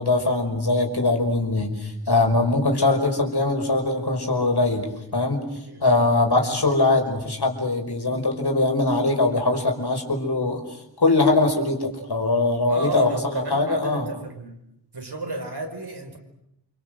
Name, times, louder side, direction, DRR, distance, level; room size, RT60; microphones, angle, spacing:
voice 1, 0.0-5.5 5.8-10.7 11.0-14.1, left 2 dB, 60° left, 3 dB, 5.5 m, -22 dB
voice 2, 5.6-6.3 12.7-14.6 14.9-16.2, right 2 dB, 60° right, 4 dB, 5.3 m, -33 dB
29.0 x 25.0 x 7.8 m, 0.81 s
wide cardioid pair, 70°, 44 cm